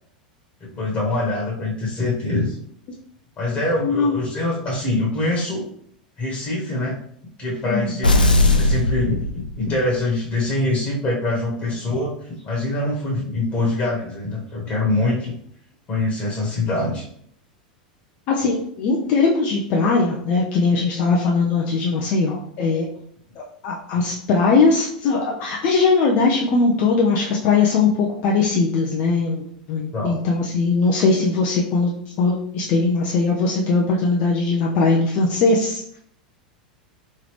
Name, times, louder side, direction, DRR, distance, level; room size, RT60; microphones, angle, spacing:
voice 1, 0.6-2.6 3.4-5.6 6.2-6.9 7.4-8.1 8.6-15.3 15.9-17.0 29.9-30.2, left 2 dB, 30° left, -3 dB, 1.4 m, -24 dB
voice 2, 3.8-4.2 7.7-7.9 18.3-22.9 23.4-31.9 32.2-36.0, left 4 dB, 45° left, -2 dB, 0.6 m, -20 dB
sound 1, 8.0-9.9, left 2 dB, 90° left, 0.5 m, -18 dB
3.6 x 3.2 x 3.2 m, 0.66 s
figure-of-eight pair, 90°, 5 cm